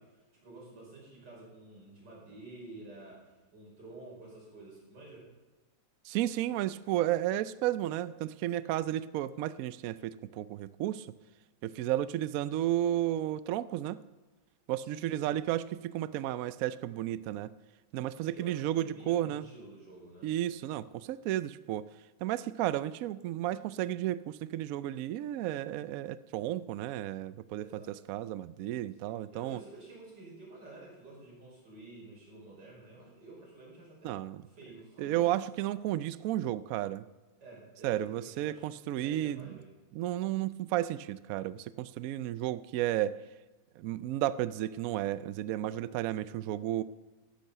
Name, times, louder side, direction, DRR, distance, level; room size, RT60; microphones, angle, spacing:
voice 1, 0.0-5.3 14.8-15.3 18.1-20.3 27.6-27.9 29.0-35.3 37.4-38.7 39.0-39.7, right 2 dB, 65° right, -3 dB, 5.4 m, -51 dB
voice 2, 6.1-11.1 11.6-14.0 14.7-17.5 17.9-19.4 20.2-21.9 22.2-29.6 34.0-34.4 35.0-37.0 37.8-39.5 39.9-43.2 43.8-46.8, right 13 dB, 85° right, 16 dB, 0.7 m, -33 dB
11.5 x 10.5 x 6.7 m, 1.2 s
omnidirectional pair, 2.0 m